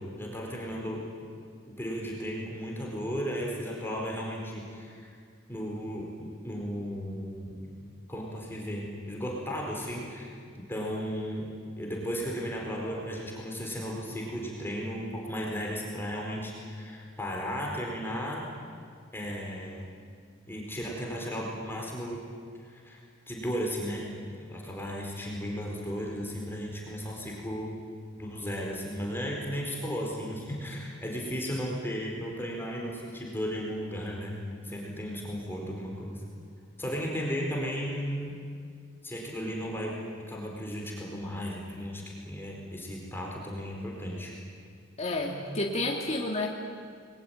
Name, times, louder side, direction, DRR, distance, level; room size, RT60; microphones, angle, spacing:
voice 1, 0.2-1.0 1.6-5.0 5.5-7.6 8.1-11.5 11.8-18.5 19.1-19.9 20.5-22.2 22.6-23.0 23.3-24.1 24.5-27.7 28.2-34.3 34.6-36.2 36.8-38.4 39.0-40.0 40.3-44.3, equal, 10° left, -2 dB, 4.4 m, -35 dB
voice 2, 45.0-46.5, left 2 dB, 35° left, -1 dB, 2.2 m, -30 dB
29.0 x 21.5 x 9.0 m, 2.2 s
head